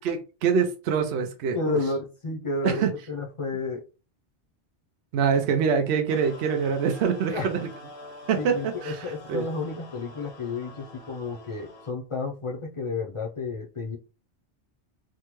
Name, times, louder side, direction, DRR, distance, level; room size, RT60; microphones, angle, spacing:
voice 1, 0.0-1.8 2.6-2.9 5.1-7.7 8.3-9.4, right 6 dB, 75° right, 0.9 m, -25 dB
voice 2, 1.2-3.8 7.3-7.5 8.4-14.0, left 3 dB, 35° left, 0.5 m, -31 dB
sound 1, 6.1-11.9, left 1 dB, 70° left, 1.0 m, -46 dB
3.6 x 2.2 x 3.0 m
omnidirectional pair, 1.1 m